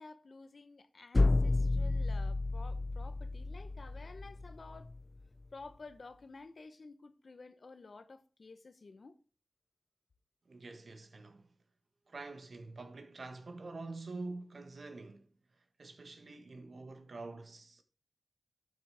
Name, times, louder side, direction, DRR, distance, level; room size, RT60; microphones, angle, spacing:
voice 1, 0.0-4.9 5.5-9.2, left 3 dB, 75° left, 0.9 m, -52 dB
sound 1, 1.1-5.0, left 2 dB, 40° left, 0.3 m, -31 dB
voice 2, 10.5-11.5 12.1-15.3 15.8-17.8, right 3 dB, 80° right, 1.5 m, -46 dB
12.0 x 6.7 x 3.5 m
wide cardioid pair, 50°, 0 cm